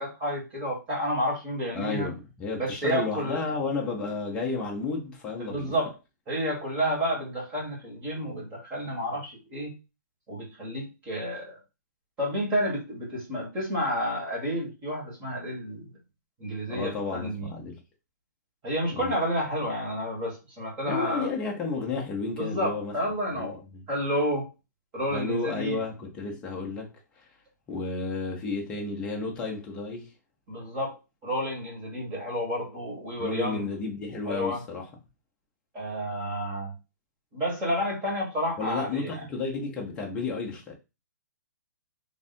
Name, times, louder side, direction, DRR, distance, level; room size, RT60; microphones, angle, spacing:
voice 1, 0.0-2.1 2.6-3.4 5.4-5.9 6.3-9.7 10.3-11.5 12.2-15.9 16.4-17.5 18.6-21.3 22.4-24.5 24.9-25.8 30.5-31.0 31.2-33.7 34.2-34.6 35.7-36.7 37.3-39.2, equal, 15° right, 1.6 m, -30 dB
voice 2, 1.7-5.7 16.7-17.8 18.9-19.2 20.9-22.9 23.3-23.8 25.1-26.9 27.7-30.1 33.2-34.8 38.6-40.7, left 4 dB, 10° left, 0.6 m, -32 dB
3.6 x 2.4 x 4.1 m
hypercardioid pair, 175°, 10 cm